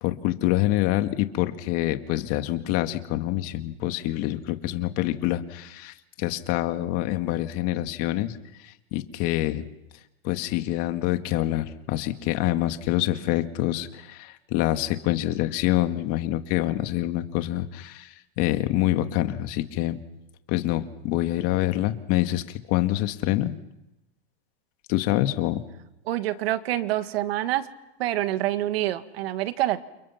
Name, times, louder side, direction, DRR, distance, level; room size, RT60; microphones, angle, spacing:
voice 1, 0.0-8.4 8.6-9.7 10.2-20.0 20.5-23.5 24.9-25.6, left 15 dB, 50° left, 8 dB, 2.2 m, -26 dB
voice 2, 26.1-27.7 28.0-29.8, right 14 dB, 75° right, 10 dB, 2.0 m, -26 dB
29.5 x 29.0 x 6.0 m, 0.91 s
supercardioid pair, 135°, 31 cm